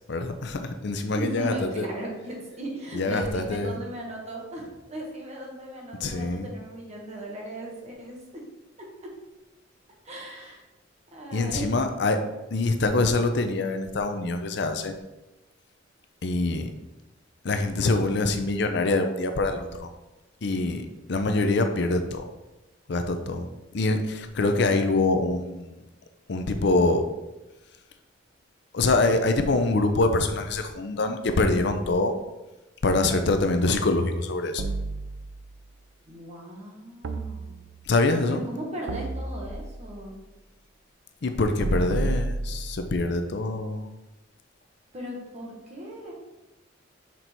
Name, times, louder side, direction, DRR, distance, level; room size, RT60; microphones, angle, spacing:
voice 1, 0.0-1.9 2.9-3.8 6.0-6.5 11.3-12.2 12.5-14.9 16.2-16.7 17.4-19.9 20.4-22.3 22.9-23.5 23.7-25.8 26.3-27.0 28.7-32.2 32.8-34.6 37.8-38.4 41.2-43.9, left 2 dB, 60° left, 7 dB, 0.5 m, -25 dB
voice 2, 1.1-8.4 8.8-9.1 10.0-10.6 11.1-11.7 36.1-37.5 38.2-40.1 44.9-46.1, right 1 dB, 35° right, -2 dB, 1.5 m, -37 dB
sound 1, 34.6-35.7 37.0-38.0 38.9-40.0 41.6-43.0, right 2 dB, 85° right, 0.5 m, -31 dB
6.0 x 4.0 x 4.5 m, 1.0 s
head